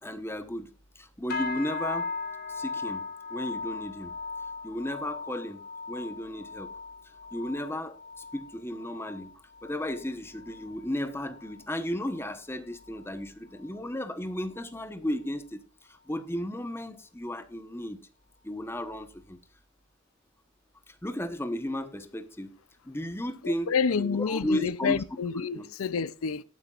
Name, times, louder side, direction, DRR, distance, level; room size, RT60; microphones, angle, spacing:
voice 1, 0.0-2.1 2.5-4.1 4.6-6.7 7.0-18.0 18.4-19.4 20.9-22.5 22.8-25.0 25.5-25.6, left 1 dB, 10° left, 1.0 m, -34 dB
sound 1, 1.3-10.8 11.1-11.6 12.0-12.3 12.9-13.0, left 4 dB, 45° left, 2.3 m, -38 dB
voice 2, 23.4-26.4, left 6 dB, 90° left, 0.5 m, -29 dB
18.5 x 10.0 x 2.5 m
head